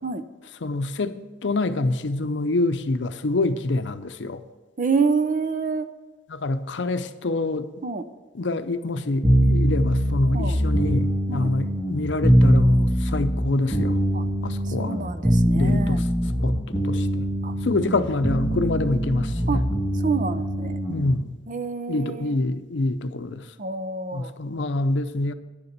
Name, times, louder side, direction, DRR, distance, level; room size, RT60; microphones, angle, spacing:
voice 1, 0.6-4.4 6.3-7.7 8.3-14.0 14.4-14.9 15.5-16.1 16.4-17.2 17.6-19.6 20.9-21.3 21.9-23.5 24.1-25.3, left 2 dB, 70° left, 10 dB, 0.6 m, -26 dB
voice 2, 4.8-5.9 7.8-8.1 10.3-10.6 11.3-11.5 14.1-14.2 14.7-16.0 17.4-17.5 19.5-19.6 20.0-20.8 21.5-22.4 23.6-24.3, right 4 dB, 45° right, 10 dB, 0.6 m, -27 dB
sound 1, 9.2-21.1, equal, 5° right, 1.6 m, -22 dB
10.0 x 6.9 x 6.6 m, 1.2 s
head